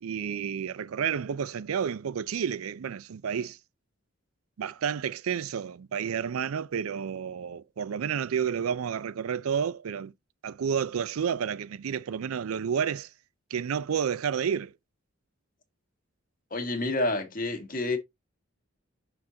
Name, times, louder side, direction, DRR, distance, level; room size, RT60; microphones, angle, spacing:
voice 1, 0.0-3.6 4.6-10.1 10.4-13.1 13.5-14.7, right 7 dB, 90° right, 0.4 m, -30 dB
voice 2, 16.5-18.0, left 2 dB, 40° left, 1.6 m, -29 dB
6.4 x 4.2 x 3.8 m
head